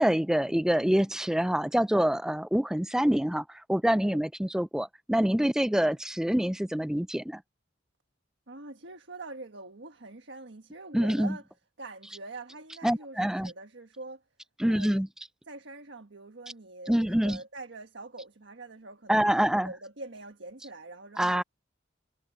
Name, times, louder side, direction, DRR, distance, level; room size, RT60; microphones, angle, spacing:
voice 1, 0.0-7.4 10.9-11.4 12.8-13.5 14.6-15.1 16.9-17.4 19.1-19.7 21.2-21.4, equal, 5° right, 0.3 m, -26 dB
voice 2, 8.5-11.4 11.8-14.2 14.7-15.0 15.5-21.4, right 2 dB, 80° right, 1.5 m, -44 dB
head